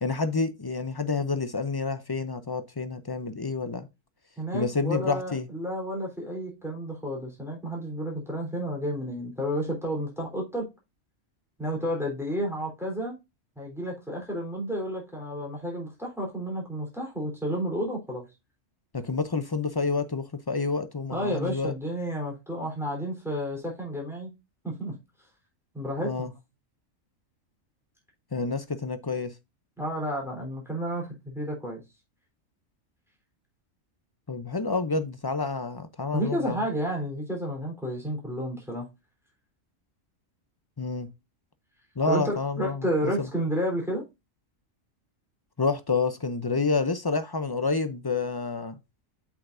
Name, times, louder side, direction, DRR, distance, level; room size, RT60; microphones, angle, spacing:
voice 1, 0.0-3.9 4.5-5.5 18.9-21.7 26.0-26.3 28.3-29.3 34.3-36.6 40.8-41.1 42.0-43.3 45.6-48.8, left 4 dB, 35° left, 0.4 m, -28 dB
voice 2, 4.4-10.7 11.6-13.2 13.6-18.3 21.1-24.3 24.6-24.9 25.7-26.3 29.8-31.8 36.1-38.9 42.1-44.0, equal, ahead, 3.6 m, -31 dB
7.9 x 6.2 x 2.6 m
omnidirectional pair, 1.4 m